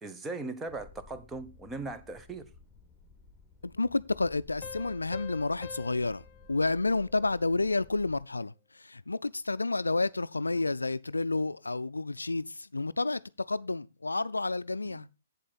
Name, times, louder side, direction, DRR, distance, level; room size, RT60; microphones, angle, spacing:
voice 1, 0.0-2.5 14.9-15.0, right 3 dB, 10° right, 0.9 m, -39 dB
sound 1, 0.7-8.2, left 4 dB, 10° left, 2.2 m, -56 dB
voice 2, 3.6-6.2 6.5-15.1, left 3 dB, 85° left, 0.4 m, -30 dB
Piano, 4.6-7.9, left 8 dB, 40° left, 0.7 m, -48 dB
8.3 x 7.6 x 4.1 m
figure-of-eight pair, 125°, 0 cm